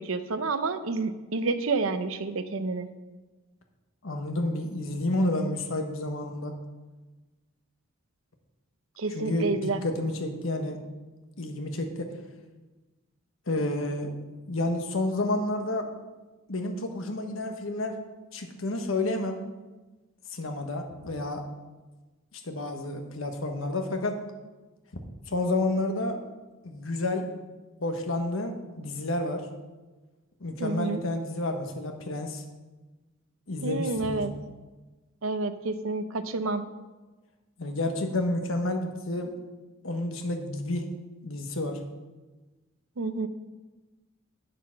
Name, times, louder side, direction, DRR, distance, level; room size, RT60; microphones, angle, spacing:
voice 1, 0.0-2.9 9.0-9.8 30.6-31.0 33.6-34.3 35.2-36.7 43.0-43.3, right 3 dB, 80° right, 10 dB, 0.7 m, -29 dB
voice 2, 4.0-6.5 9.1-10.8 11.4-12.1 13.5-14.2 14.5-15.9 16.5-18.0 18.3-19.4 20.3-21.4 22.3-24.2 25.3-26.2 26.6-27.3 27.8-29.5 30.4-32.4 33.5-34.2 37.6-39.4 39.8-40.9 41.2-41.8, left 2 dB, 75° left, 4 dB, 1.2 m, -30 dB
8.7 x 6.9 x 5.9 m, 1.2 s
head